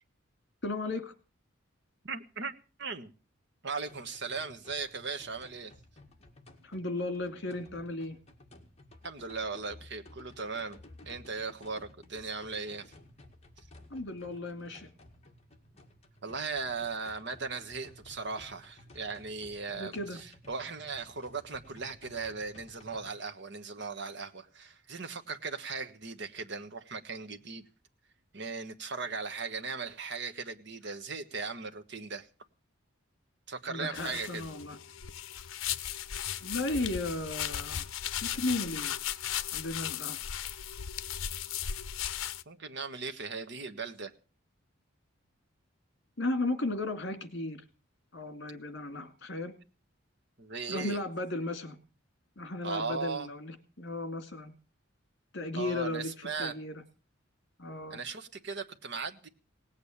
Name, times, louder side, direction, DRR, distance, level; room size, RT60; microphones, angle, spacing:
voice 1, 0.6-1.1 6.6-8.2 13.9-14.9 19.7-20.2 33.7-34.8 36.4-37.9 38.2-38.9 39.5-40.2 46.2-47.6 48.1-49.5 50.7-51.8 52.4-54.5 55.3-56.8 57.6-58.0, left 2 dB, 55° left, 8 dB, 2.4 m, -35 dB
voice 2, 2.0-2.5 2.8-3.1 3.6-5.7 9.0-10.8 11.0-12.9 16.2-27.6 28.3-32.3 33.5-34.4 42.4-44.1 50.4-51.0 52.6-53.3 55.6-56.5 57.9-59.3, right 4 dB, 60° right, 6 dB, 1.4 m, -38 dB
sound 1, 3.9-23.1, left 1 dB, 30° left, 2.0 m, -55 dB
sound 2, 34.0-42.4, left 10 dB, 80° left, 0.7 m, -36 dB
18.5 x 8.5 x 7.2 m, 0.36 s
head